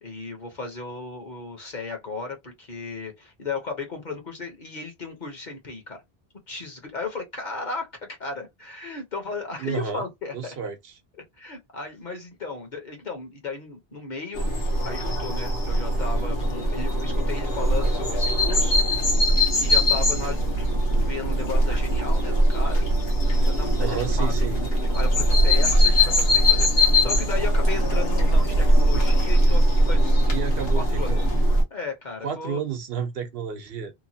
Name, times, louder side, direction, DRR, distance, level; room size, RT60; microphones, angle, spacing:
voice 1, 0.0-6.0 6.5-10.6 11.4-14.5 14.8-18.8 19.6-20.4 20.9-22.9 23.3-24.3 24.9-30.3 30.8-31.3 31.7-32.6, left 3 dB, 50° left, 1.0 m, -35 dB
voice 2, 9.6-10.0 10.3-10.9 23.8-24.6 30.3-31.4 32.2-33.9, right 7 dB, 70° right, 0.9 m, -31 dB
sound 1, 14.4-31.6, equal, 70° left, 1.1 m, -21 dB
3.0 x 2.3 x 2.7 m
omnidirectional pair, 1.1 m